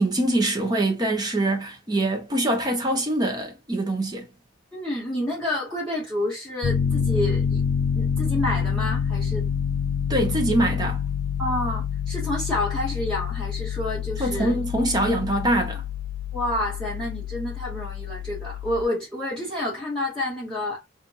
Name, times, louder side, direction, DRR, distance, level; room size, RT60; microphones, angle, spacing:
voice 1, 0.0-4.3 10.1-11.0 14.2-15.8, right 1 dB, 20° right, 0.9 m, -24 dB
voice 2, 4.7-7.6 8.0-9.5 11.4-14.6 16.3-20.8, left 1 dB, 5° left, 2.0 m, -29 dB
Piano, 6.6-18.8, left 7 dB, 60° left, 0.4 m, -27 dB
4.3 x 2.6 x 2.5 m
head